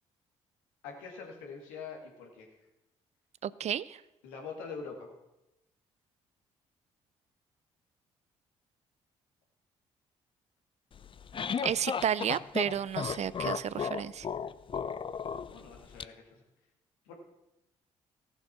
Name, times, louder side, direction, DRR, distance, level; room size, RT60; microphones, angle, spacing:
voice 1, 0.8-2.5 4.2-5.1 15.5-16.4 17.1-17.2, left 5 dB, 85° left, 1 dB, 2.1 m, -44 dB
voice 2, 3.4-4.0 11.6-14.3, right 9 dB, 50° right, 19 dB, 0.5 m, -32 dB
sound 1, 11.0-16.0, left 6 dB, 35° left, 0.5 m, -35 dB
15.0 x 6.7 x 6.0 m, 0.93 s
hypercardioid pair, 50°, 14 cm